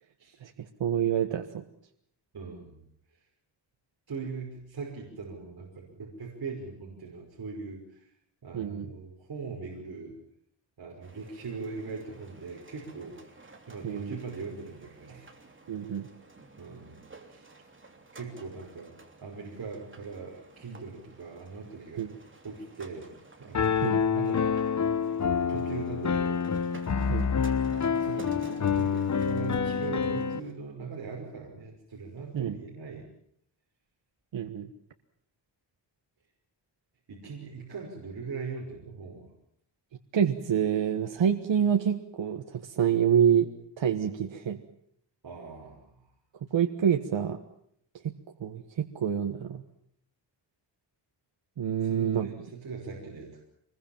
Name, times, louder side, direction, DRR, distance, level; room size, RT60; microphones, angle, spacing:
voice 1, 0.4-1.6 8.5-8.9 13.8-14.2 15.7-16.1 22.0-22.1 23.8-24.0 27.1-27.3 32.3-32.6 34.3-34.7 40.1-43.5 43.8-44.6 46.5-47.4 48.0-48.1 48.4-49.6 51.6-52.3, right 8 dB, 80° right, 5 dB, 1.5 m, -27 dB
voice 2, 2.3-2.8 4.1-8.1 8.4-10.2 10.8-15.3 16.6-17.0 17.3-17.5 18.1-18.9 19.2-22.1 22.4-23.1 23.4-24.5 25.5-26.7 27.0-33.1 37.1-39.3 45.2-46.1 51.8-53.4, right 4 dB, 55° right, -2 dB, 5.7 m, -41 dB
sound 1, 11.0-30.5, right 2 dB, 25° right, 3.2 m, -52 dB
Piano, 23.5-30.4, left 6 dB, 40° left, 0.9 m, -27 dB
25.5 x 21.5 x 7.5 m, 0.70 s
wide cardioid pair, 140°, 44 cm